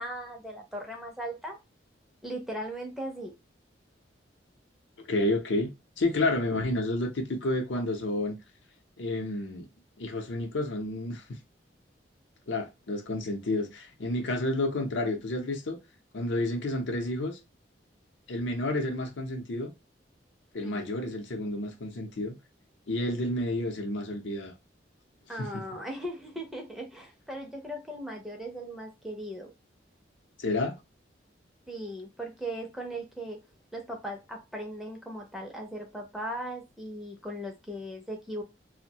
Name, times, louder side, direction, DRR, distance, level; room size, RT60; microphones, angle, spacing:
voice 1, 0.0-1.6 2.2-3.3 20.6-20.9 25.3-29.5 31.7-33.4 33.7-38.4, right 1 dB, ahead, 0.5 m, -38 dB
voice 2, 5.1-5.7 6.0-8.4 9.0-9.7 10.0-11.2 12.5-15.8 16.1-17.4 18.3-19.7 20.5-22.3 22.9-24.5 25.4-25.6 30.4-30.8, left 2 dB, 80° left, 0.6 m, -30 dB
2.6 x 2.1 x 2.7 m
head